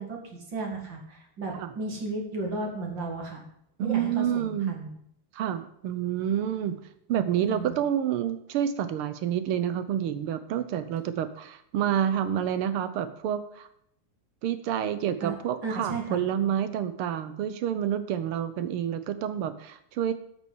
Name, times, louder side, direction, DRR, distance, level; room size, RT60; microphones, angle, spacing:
voice 1, 0.0-3.4 3.8-4.9 7.4-7.8 15.2-16.2, right 3 dB, 55° right, 1 dB, 2.7 m, -34 dB
voice 2, 3.8-4.7 5.3-6.7 7.1-13.7 14.4-20.1, right 10 dB, 80° right, 11 dB, 1.7 m, -28 dB
8.7 x 6.3 x 7.1 m, 0.71 s
omnidirectional pair, 2.4 m